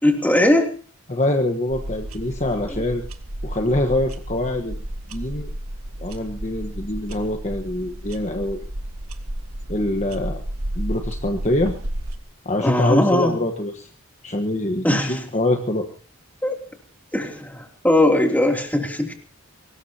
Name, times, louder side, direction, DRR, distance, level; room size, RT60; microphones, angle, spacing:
voice 1, 0.0-0.8 12.6-13.3 14.8-15.2 16.4-16.5 17.1-19.1, left 1 dB, 10° left, 2 dB, 3.1 m, -19 dB
voice 2, 1.1-3.0 3.4-4.8 5.1-5.5 6.0-8.6 9.7-10.4 10.8-11.7 12.4-13.9 14.2-15.9, left 1 dB, 35° left, 4 dB, 1.4 m, -24 dB
Kitchen wall clock ticking, 1.7-12.2, right 1 dB, 85° right, 1.7 m, -32 dB
24.0 x 20.0 x 2.9 m, 0.39 s
head